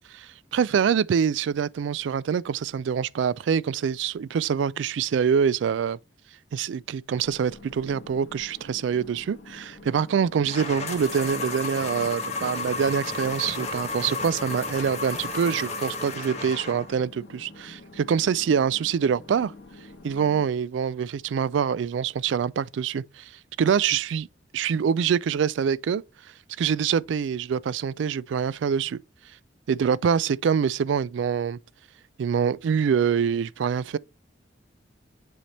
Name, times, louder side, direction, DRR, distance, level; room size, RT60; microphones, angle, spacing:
voice 1, 0.1-6.0 6.5-19.5 20.0-23.3 23.6-24.3 24.5-26.0 26.6-29.0 29.7-31.6 32.2-34.0, right 7 dB, 75° right, 0.3 m, -25 dB
sound 1, 7.2-20.5, left 2 dB, 70° left, 1.4 m, -47 dB
sound 2, 10.5-17.0, left 3 dB, 35° left, 1.3 m, -32 dB
7.7 x 3.3 x 4.1 m
head